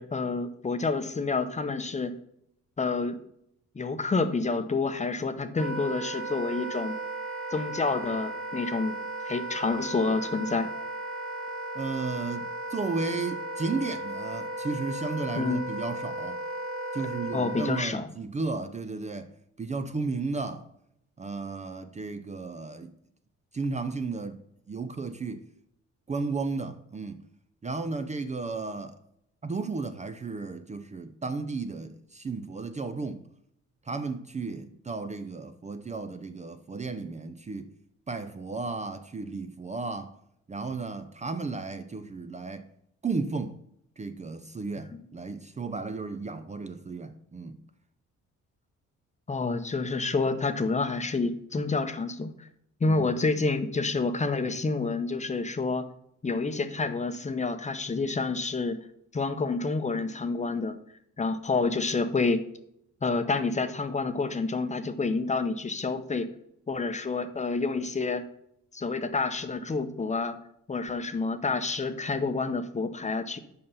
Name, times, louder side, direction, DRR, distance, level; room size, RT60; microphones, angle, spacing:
voice 1, 0.0-2.1 2.8-3.2 3.7-7.0 7.5-8.9 9.2-10.7 15.3-15.6 17.0-17.1 17.3-18.1 44.9-45.1 49.3-52.5 52.8-55.9 56.2-58.8 59.1-60.8 61.2-62.4 63.0-66.3 66.7-68.2 68.7-70.4 70.7-73.4, left 3 dB, 25° left, 0.7 m, -28 dB
Wind instrument woodwind instrument, 5.6-17.8, right 1 dB, 45° right, 2.2 m, -35 dB
voice 2, 11.7-16.4 16.9-19.3 19.6-20.6 21.2-22.9 23.5-24.4 24.7-25.4 26.1-27.2 27.6-29.0 29.4-33.2 33.9-37.7 38.1-40.1 40.5-42.6 43.0-43.6 44.0-47.6 52.9-53.1, right 4 dB, 25° right, 0.5 m, -34 dB
5.6 x 5.4 x 5.5 m
cardioid pair, 90°, 30 cm